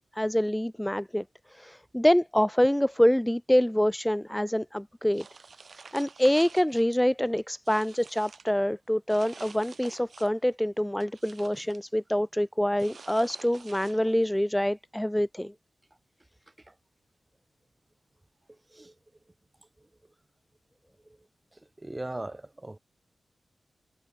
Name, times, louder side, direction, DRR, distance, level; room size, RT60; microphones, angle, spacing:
voice 1, 0.1-5.3 5.9-15.5, equal, 5° left, 0.4 m, -26 dB
sound 1, 5.1-7.0 7.4-8.5 9.1-10.5 10.8-11.8 12.8-14.3, right 4 dB, 50° right, 7.7 m, -49 dB
voice 2, 21.8-22.8, right 1 dB, 15° right, 3.8 m, -38 dB
wide cardioid pair, 130°, 0 cm